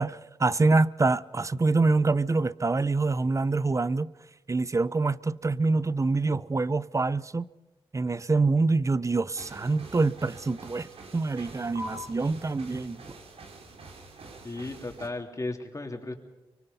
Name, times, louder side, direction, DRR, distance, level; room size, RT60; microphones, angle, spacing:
voice 1, 0.0-4.1 4.5-7.5 7.9-13.0, right 3 dB, 30° right, 0.7 m, -25 dB
sound 1, 9.3-15.1, right 1 dB, 80° right, 2.9 m, -45 dB
voice 2, 14.4-16.1, left 2 dB, 30° left, 3.3 m, -35 dB
24.5 x 24.0 x 5.6 m
cardioid pair, 55°, 10 cm